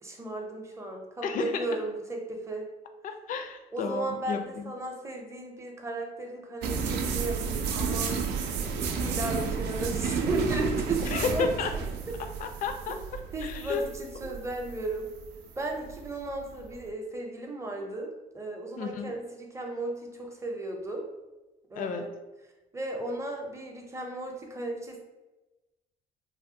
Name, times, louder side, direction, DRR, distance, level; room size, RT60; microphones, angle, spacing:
voice 1, 0.0-2.6 3.7-8.2 8.7-11.5 11.7-11.8 13.3-15.1 15.6-21.0 21.7-22.1 22.7-25.0, right 2 dB, 15° right, 1 dB, 0.6 m, -35 dB
voice 2, 1.2-1.7 3.0-4.7 11.0-11.7 12.4-13.0 13.4-13.8 14.2-14.4 18.8-19.1 21.7-22.0, left 5 dB, 50° left, 7 dB, 0.4 m, -32 dB
sound 1, 6.6-16.8, right 5 dB, 85° right, 0.4 m, -32 dB
3.3 x 2.1 x 2.7 m, 1.1 s
cardioid pair, 110°, 17 cm